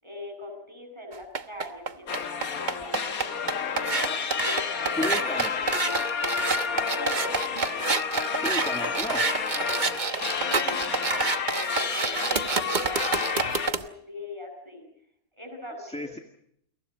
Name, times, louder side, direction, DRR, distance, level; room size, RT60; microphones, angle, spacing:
voice 1, 0.0-4.1 4.4-5.9 6.7-7.3 10.0-14.9 15.4-16.1, left 1 dB, 15° right, 4 dB, 7.5 m, -42 dB
sound 1, 1.1-13.8, right 4 dB, 35° right, 1.1 m, -28 dB
sound 2, 2.1-13.7, left 6 dB, 60° left, 1.9 m, -30 dB
voice 2, 5.0-5.5 8.4-9.2 15.8-16.2, left 1 dB, 5° left, 5 dB, 1.9 m, -33 dB
29.5 x 23.5 x 5.2 m, 0.71 s
omnidirectional pair, 1.7 m